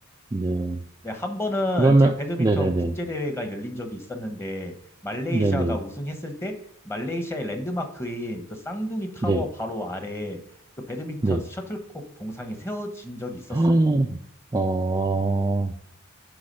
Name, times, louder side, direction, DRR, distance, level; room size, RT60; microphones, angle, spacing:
voice 1, 0.3-0.8 1.8-2.1 2.4-2.9 5.3-5.8 9.2-9.4 11.2-11.4 13.5-14.1 14.5-15.7, right 2 dB, 20° right, 3 dB, 0.4 m, -21 dB
voice 2, 1.0-4.7 5.0-6.6 6.8-10.4 10.8-13.8, left 1 dB, 10° left, 5 dB, 1.0 m, -31 dB
9.7 x 3.5 x 5.3 m, 0.71 s
head